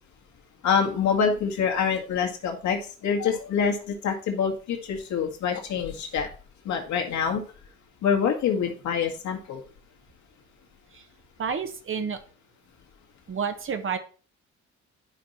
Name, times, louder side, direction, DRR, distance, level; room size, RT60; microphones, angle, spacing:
voice 1, 0.6-6.3 6.7-7.4 8.0-9.6, left 6 dB, 50° left, 3 dB, 1.8 m, -26 dB
voice 2, 11.4-12.2 13.3-14.0, right 6 dB, 35° right, 8 dB, 1.1 m, -30 dB
10.5 x 5.2 x 4.4 m, 0.37 s
figure-of-eight pair, 45°, 36 cm